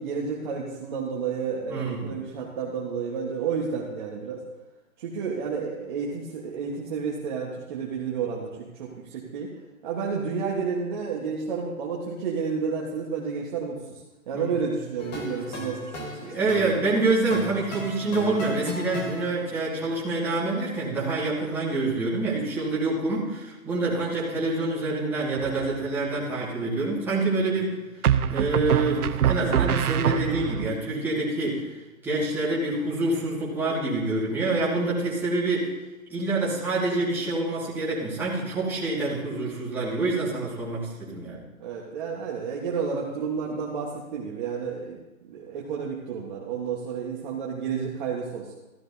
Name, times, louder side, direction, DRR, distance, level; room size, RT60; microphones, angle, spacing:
voice 1, 0.0-4.4 5.0-8.5 8.8-9.5 9.8-14.0 14.3-16.3 27.5-27.6 41.6-45.0 45.2-48.5, right 6 dB, 35° right, -4 dB, 1.3 m, -31 dB
voice 2, 1.7-2.1 14.3-14.5 16.2-27.8 28.3-31.7 32.0-35.7 36.1-41.4, right 2 dB, 5° right, -9 dB, 1.9 m, -26 dB
sound 1, 15.0-19.7, left 2 dB, 30° left, 1.5 m, -36 dB
sound 2, 25.4-25.9 28.0-30.7, right 9 dB, 90° right, 0.6 m, -24 dB
14.0 x 11.0 x 2.7 m, 1.1 s
hypercardioid pair, 155°, 43 cm